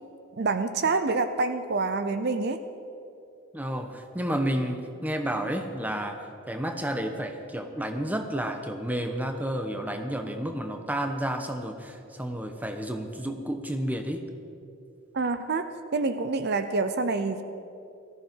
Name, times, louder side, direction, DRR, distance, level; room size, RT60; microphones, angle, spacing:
voice 1, 0.4-2.6 15.1-15.7 15.9-17.4, right 3 dB, 55° right, 10 dB, 0.6 m, -27 dB
voice 2, 3.5-14.3, right 1 dB, 10° right, 6 dB, 1.0 m, -31 dB
18.0 x 14.0 x 4.6 m, 2.6 s
head